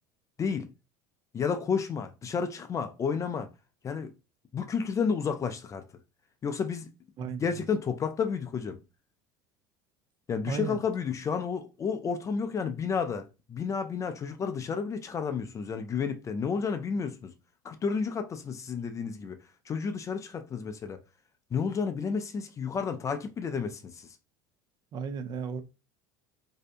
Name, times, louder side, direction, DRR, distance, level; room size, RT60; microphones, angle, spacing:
voice 1, 1.3-3.5 3.8-4.1 4.5-5.8 6.4-6.9 7.2-8.8 10.3-17.3 17.6-19.4 19.7-21.0 21.5-24.1, left 6 dB, 30° left, 0.4 m, -31 dB
voice 2, 10.5-10.8 24.9-25.6, right 6 dB, 40° right, 0.4 m, -34 dB
2.7 x 2.2 x 2.5 m
hypercardioid pair, 80°, 11 cm